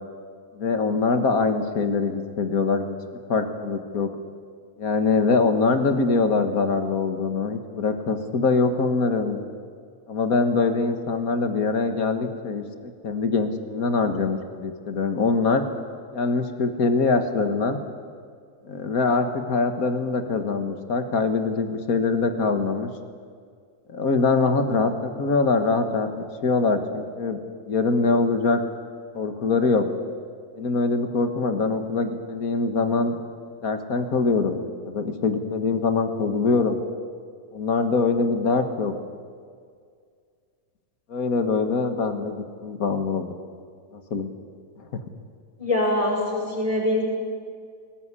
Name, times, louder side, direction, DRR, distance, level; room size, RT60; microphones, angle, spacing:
voice 1, 0.5-3.0 3.3-4.1 4.8-9.4 10.1-15.6 16.1-17.8 18.6-22.9 23.9-26.1 26.4-27.4 27.6-28.6 29.1-29.9 30.5-33.2 33.6-36.8 37.5-38.9 41.1-42.4 42.6-43.3 44.1-44.3, left 4 dB, 65° left, 7 dB, 1.9 m, -23 dB
voice 2, 45.6-47.0, left 1 dB, 20° left, -2 dB, 5.6 m, -23 dB
19.5 x 19.0 x 9.8 m, 2.1 s
omnidirectional pair, 1.7 m